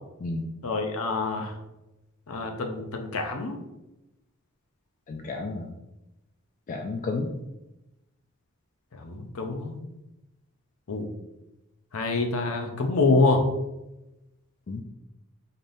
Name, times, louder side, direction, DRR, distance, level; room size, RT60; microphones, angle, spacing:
voice 1, 0.6-1.5 2.3-3.5 8.9-9.8 10.9-11.1 11.9-13.5, left 3 dB, 70° left, 4 dB, 0.6 m, -26 dB
voice 2, 5.1-5.7 6.7-7.3 14.7-14.8, left 3 dB, 35° left, 3 dB, 0.3 m, -31 dB
4.1 x 3.4 x 2.6 m, 0.94 s
head